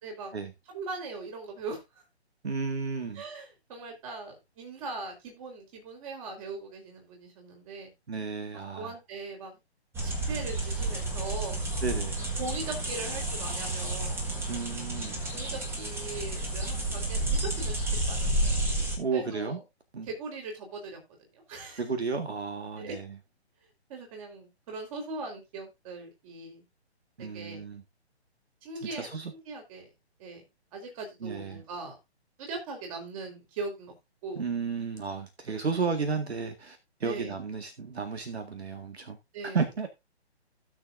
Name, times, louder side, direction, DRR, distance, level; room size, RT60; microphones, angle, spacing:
voice 1, 0.7-1.8 3.1-7.9 8.7-9.6 10.0-11.6 12.4-14.2 15.3-17.8 18.1-18.6 19.1-19.6 20.1-21.0 21.3-21.8 22.8-23.0 23.9-26.6 27.2-27.7 28.6-29.9 30.2-30.4 30.7-32.0 32.4-33.9 34.2-34.4 37.0-37.3 39.3-39.7, right 3 dB, 30° right, 4.1 m, -40 dB
voice 2, 2.4-3.2 8.1-8.9 11.8-12.2 14.5-15.2 19.0-19.6 19.9-20.1 21.8-23.1 27.2-27.8 28.8-29.3 31.2-31.6 34.4-39.2 39.4-39.9, right 5 dB, 70° right, 1.8 m, -33 dB
sound 1, 9.9-19.0, right 2 dB, 5° right, 1.6 m, -31 dB
16.5 x 6.7 x 2.6 m
figure-of-eight pair, 140°, 33 cm